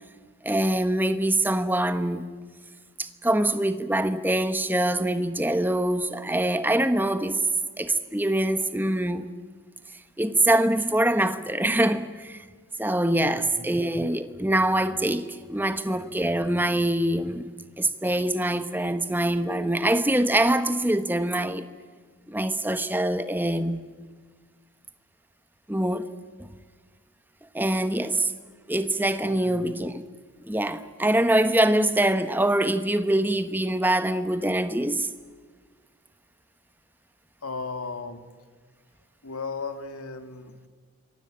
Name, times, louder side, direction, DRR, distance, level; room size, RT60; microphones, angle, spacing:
voice 1, 0.4-2.3 3.0-7.5 7.8-9.3 10.2-12.4 12.8-17.5 17.8-21.7 22.3-23.8 25.7-26.1 27.5-28.3 28.7-30.0 30.4-35.1, right 1 dB, 10° right, 1.0 m, -24 dB
voice 2, 13.2-13.7 29.2-29.7 37.4-38.3 39.2-40.6, left 4 dB, 85° left, 2.0 m, -36 dB
26.5 x 23.0 x 8.8 m
head